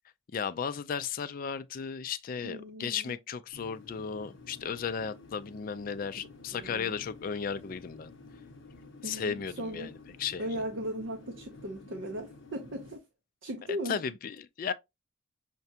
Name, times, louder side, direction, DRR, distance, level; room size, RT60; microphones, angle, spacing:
voice 1, 0.3-8.1 9.0-9.9 10.2-10.6 13.9-14.7, left 6 dB, 45° left, 0.3 m, -35 dB
voice 2, 2.4-3.2 6.5-7.0 9.0-9.9 10.4-13.0 13.4-14.0, equal, 65° right, 0.6 m, -37 dB
sound 1, 3.5-13.0, left 3 dB, 60° left, 0.8 m, -51 dB
5.8 x 2.2 x 2.7 m
head